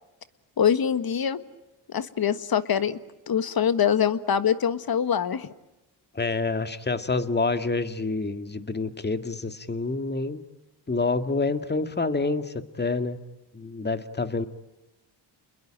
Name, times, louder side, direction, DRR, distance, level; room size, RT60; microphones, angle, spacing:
voice 1, 0.6-1.4 1.9-3.0 3.3-5.5, left 8 dB, 50° left, 12 dB, 1.7 m, -24 dB
voice 2, 6.1-10.4 10.9-13.2 13.5-14.5, left 3 dB, 20° left, 9 dB, 2.0 m, -27 dB
29.5 x 21.5 x 8.8 m, 1.0 s
cardioid pair, 75°, 46 cm